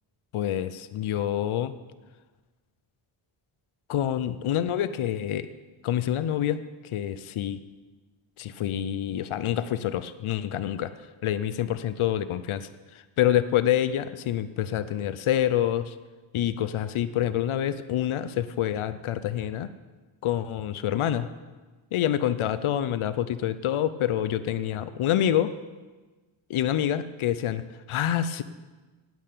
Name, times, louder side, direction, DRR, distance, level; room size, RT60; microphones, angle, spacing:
voice 1, 0.3-1.7 3.9-5.5 5.8-6.6 6.9-7.6 8.4-10.9 11.2-15.9 16.3-19.7 20.2-21.3 21.9-25.5 26.5-28.4, left 11 dB, 85° left, 13 dB, 0.7 m, -27 dB
9.4 x 8.7 x 8.4 m, 1.3 s
cardioid pair, 75°, 48 cm